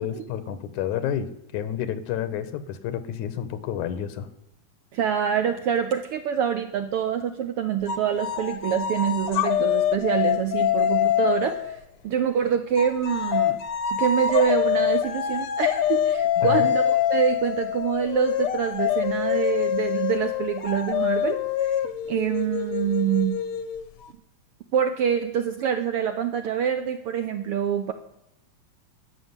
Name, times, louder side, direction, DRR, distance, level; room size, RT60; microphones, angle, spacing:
voice 1, 0.0-4.3 16.4-16.7, left 10 dB, 90° left, 13 dB, 2.6 m, -30 dB
voice 2, 4.9-11.7 12.0-13.6 13.9-21.7 22.1-23.4 24.7-27.9, right 8 dB, 75° right, 8 dB, 1.3 m, -25 dB
sound 1, 7.9-11.8 12.8-24.1, left 10 dB, 65° left, 1.6 m, -25 dB
13.0 x 6.5 x 9.6 m, 0.84 s
omnidirectional pair, 3.4 m